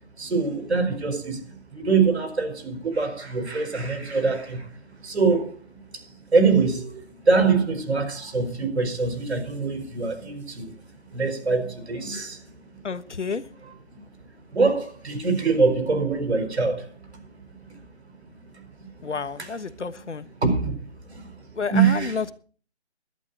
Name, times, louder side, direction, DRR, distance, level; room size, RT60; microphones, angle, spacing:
voice 1, 0.2-1.4 1.7-4.7 5.0-10.7 11.1-12.4 12.7-12.8 14.5-16.9 17.7-17.8 18.5-18.6 19.0-19.1 19.4-19.5 20.4-20.8 21.1-22.1, right 4 dB, 65° right, 4.5 m, -24 dB
voice 2, 12.8-13.4 19.0-20.3 21.5-22.3, left 5 dB, 80° left, 1.3 m, -30 dB
17.5 x 12.0 x 4.0 m
figure-of-eight pair, 165°, 35 cm